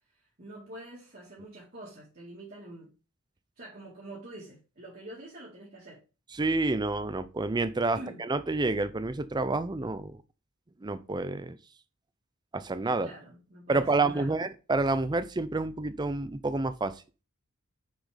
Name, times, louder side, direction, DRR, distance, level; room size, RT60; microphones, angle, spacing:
voice 1, 0.4-2.9 3.6-6.0 7.9-8.2 13.0-14.4, right 1 dB, 40° right, 1.9 m, -46 dB
voice 2, 6.4-10.2 10.8-11.6 12.5-13.1 13.7-16.9, right 3 dB, 20° right, 0.5 m, -29 dB
6.3 x 4.3 x 4.8 m
head